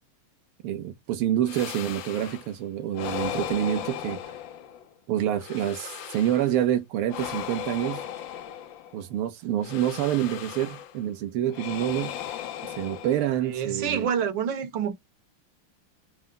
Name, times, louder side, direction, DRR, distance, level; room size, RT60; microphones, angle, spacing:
voice 1, 0.6-4.2 5.1-8.1 8.9-12.2 12.6-14.1, right 11 dB, 90° right, 1.6 m, -27 dB
sound 1, 1.5-2.5 2.9-4.9 5.4-6.6 7.1-9.1 9.6-11.0 11.5-13.6, left 10 dB, 70° left, 1.3 m, -37 dB
voice 2, 13.4-14.9, right 7 dB, 60° right, 1.6 m, -27 dB
5.4 x 2.1 x 3.7 m
omnidirectional pair, 2.4 m